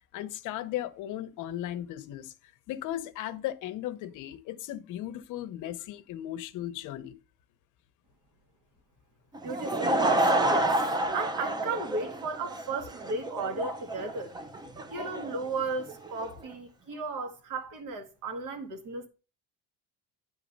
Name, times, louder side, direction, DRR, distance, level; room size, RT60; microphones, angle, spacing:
voice 1, 0.1-2.3 2.7-7.2, left 13 dB, 60° left, 0.8 m, -36 dB
Laughter / Crowd, 9.3-16.3, right 1 dB, 10° right, 0.4 m, -29 dB
voice 2, 9.4-14.3 14.9-19.1, right 3 dB, 60° right, 1.7 m, -35 dB
9.9 x 3.6 x 5.2 m
cardioid pair, 155°, 35 cm